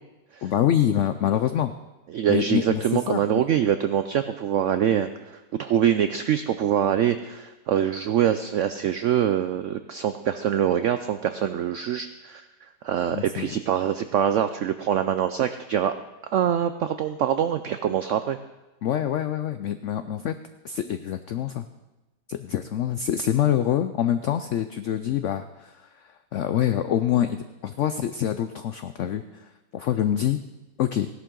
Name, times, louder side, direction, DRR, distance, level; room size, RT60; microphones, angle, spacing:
voice 1, 0.4-1.7 2.3-3.2 13.1-13.5 18.8-20.3 20.6-21.7 22.3-27.4 27.6-30.4 30.8-31.1, left 10 dB, 80° left, 10 dB, 0.6 m, -25 dB
voice 2, 2.1-12.4 12.8-15.9 16.3-18.4, right 9 dB, 90° right, 10 dB, 0.6 m, -24 dB
16.5 x 11.5 x 3.8 m, 1.1 s
omnidirectional pair, 1.8 m